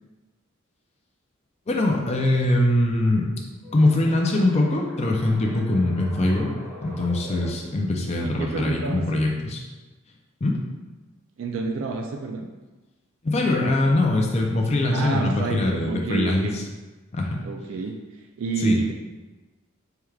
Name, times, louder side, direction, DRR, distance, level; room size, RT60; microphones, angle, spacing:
voice 1, 1.7-3.3 3.7-6.5 6.8-9.6 10.4-10.6 13.2-16.6 17.1-17.4 18.6-18.8, left 2 dB, 30° left, 0 dB, 0.4 m, -22 dB
sound 1, 3.6-7.5, equal, 10° left, 0.9 m, -42 dB
voice 2, 8.1-9.2 11.4-12.5 14.9-16.6 17.4-18.9, right 3 dB, 65° right, 2 dB, 0.3 m, -29 dB
4.5 x 3.3 x 2.3 m, 1.2 s
head